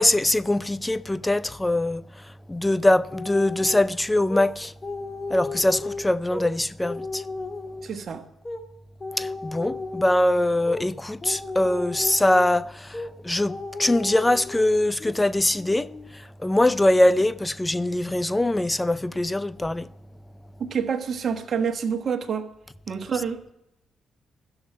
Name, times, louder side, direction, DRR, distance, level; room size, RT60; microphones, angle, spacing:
voice 1, 0.0-4.7 5.3-7.2 9.2-19.9, left 1 dB, 15° left, 0.5 m, -23 dB
sound 1, 3.1-3.9 4.3-4.5 4.8-6.5 6.8-7.9 8.4-8.6 9.0-10.3 10.6-10.8 11.2-12.5 12.9-13.1 13.5-14.7 15.0-15.2 15.5-16.1, left 3 dB, 40° left, 1.7 m, -34 dB
voice 2, 7.8-8.2 20.6-22.5 22.9-23.4, right 6 dB, 55° right, 1.3 m, -27 dB
12.0 x 7.9 x 8.1 m
supercardioid pair, 55°, 0 cm